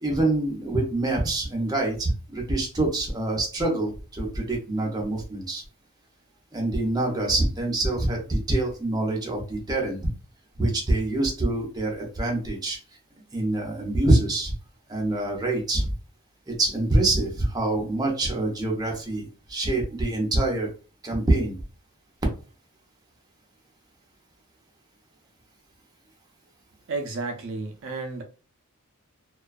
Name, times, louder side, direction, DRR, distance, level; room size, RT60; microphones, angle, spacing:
voice 1, 0.0-5.6 6.5-10.0 10.6-12.8 13.3-14.5 14.9-15.9 16.5-20.7 21.0-21.6, right 2 dB, 15° right, 0.6 m, -25 dB
voice 2, 26.9-28.2, right 3 dB, 60° right, 0.4 m, -32 dB
2.3 x 2.2 x 2.3 m
head